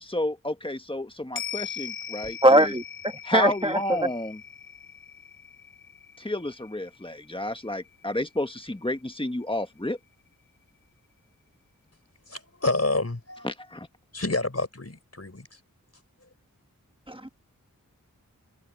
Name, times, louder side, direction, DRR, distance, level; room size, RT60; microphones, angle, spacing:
voice 1, 0.0-2.7 3.2-4.4 6.2-10.0 13.4-13.9, left 1 dB, 15° left, 1.5 m, -31 dB
sound 1, 1.4-9.9 10.3-10.4, left 8 dB, 90° left, 1.5 m, -41 dB
voice 2, 2.4-4.1 17.1-17.3, right 1 dB, 15° right, 1.6 m, -21 dB
voice 3, 12.3-13.5 14.1-15.5, left 2 dB, 45° left, 4.2 m, -28 dB
open air
wide cardioid pair, 45°, 33 cm